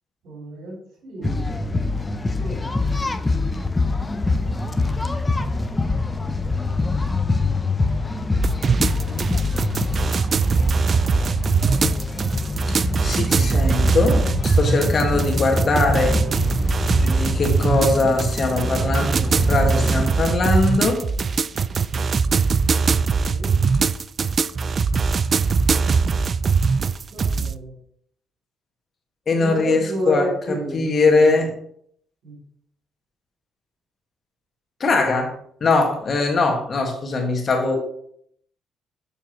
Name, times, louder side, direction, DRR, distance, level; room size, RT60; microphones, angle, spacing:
voice 1, 0.2-1.4 2.3-2.7 8.9-9.4 23.1-23.6 27.1-27.8 29.4-31.4 32.2-32.4 34.9-35.0 37.7-37.8, right 1 dB, 75° right, -1 dB, 3.4 m, -31 dB
sound 1, 1.2-20.1, left 3 dB, 20° left, 0.6 m, -25 dB
sound 2, 8.4-27.6, right 5 dB, 45° right, 0.3 m, -21 dB
voice 2, 12.7-16.2 16.9-21.0 29.3-30.3 30.7-31.5 34.8-35.3 35.6-37.8, left 3 dB, 45° left, 2 dB, 1.8 m, -21 dB
7.0 x 7.0 x 3.1 m, 0.65 s
cardioid pair, 90°, 0 cm